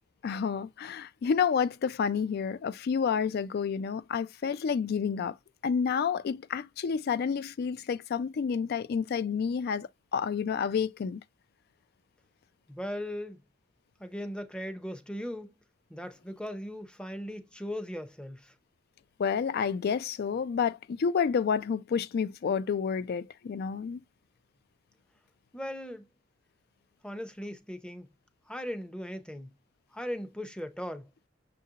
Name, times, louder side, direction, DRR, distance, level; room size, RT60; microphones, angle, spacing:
voice 1, 0.2-5.4 5.6-11.2 19.2-24.0, left 6 dB, 50° left, 0.3 m, -29 dB
voice 2, 12.7-13.4 14.0-15.5 15.9-18.5 25.5-26.1 27.0-28.1 28.5-29.5 29.9-31.1, equal, 5° left, 0.6 m, -38 dB
6.5 x 2.6 x 2.7 m
head